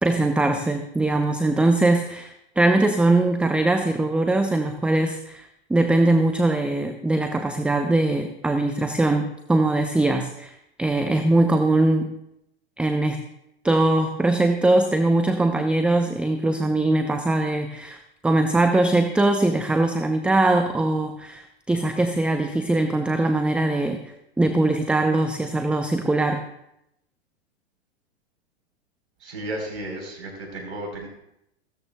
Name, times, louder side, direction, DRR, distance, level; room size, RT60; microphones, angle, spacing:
voice 1, 0.0-12.1 12.8-13.2 13.6-18.0 18.2-24.0 24.4-26.4, right 2 dB, 5° right, 6 dB, 0.5 m, -21 dB
voice 2, 29.2-31.1, right 1 dB, 80° right, 1 dB, 4.0 m, -33 dB
17.0 x 13.5 x 2.2 m, 0.81 s
hypercardioid pair, 110°, 33 cm